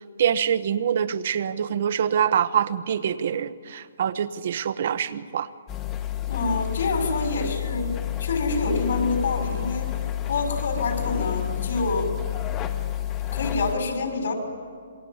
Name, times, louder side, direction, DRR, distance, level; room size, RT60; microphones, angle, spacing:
voice 1, 0.2-5.5 8.7-8.8, right 8 dB, 55° right, 12 dB, 0.9 m, -25 dB
sound 1, 5.7-13.7, left 12 dB, 20° left, 1.2 m, -29 dB
voice 2, 6.3-9.9 10.3-12.2 13.3-14.3, left 3 dB, 65° left, 4 dB, 5.9 m, -27 dB
27.0 x 22.5 x 8.0 m, 2.1 s
hypercardioid pair, 155°, 0 cm